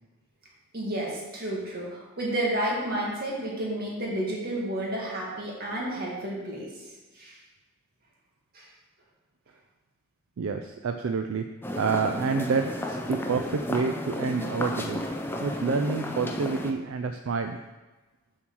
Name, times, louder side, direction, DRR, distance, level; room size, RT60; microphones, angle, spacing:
voice 1, 0.7-6.7 7.2-7.4 8.5-8.7, right 1 dB, 45° right, -4 dB, 2.1 m, -31 dB
voice 2, 10.4-11.4 11.8-17.6, right 5 dB, 75° right, 6 dB, 0.4 m, -28 dB
sound 1, 11.6-16.7, left 1 dB, 10° left, 0.5 m, -33 dB
7.1 x 4.5 x 6.2 m, 1.2 s
head